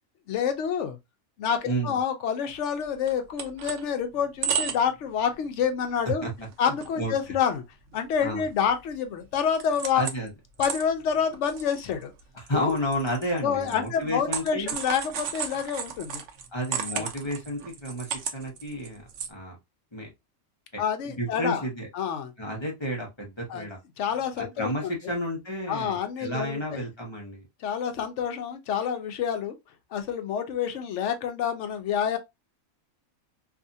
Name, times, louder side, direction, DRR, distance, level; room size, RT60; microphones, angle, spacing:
voice 1, 0.3-1.0 1.4-6.3 6.6-7.6 7.9-10.0 10.6-12.1 12.5-12.8 13.4-16.2 16.9-17.1 20.8-21.6 21.9-22.3 23.5-23.7 24.0-25.1 25.7-26.8 27.6-29.5 29.9-32.2, left 7 dB, 65° left, 0.8 m, -28 dB
voice 2, 1.6-2.0 6.2-6.5 7.0-7.1 8.2-8.5 9.9-10.3 12.3-14.8 16.5-19.0 19.3-19.6 19.9-20.1 20.7-20.8 21.2-21.9 22.4-23.8 24.4-27.5, equal, 25° left, 0.7 m, -31 dB
sound 1, 2.8-2.9 3.1-3.8 4.2-5.0 5.3-5.5 6.0-6.1 6.4-6.9 7.2-7.3 7.9-8.9 9.2-10.3 10.6-19.3, right 7 dB, 65° right, 0.8 m, -34 dB
2.7 x 2.4 x 2.5 m
omnidirectional pair, 1.5 m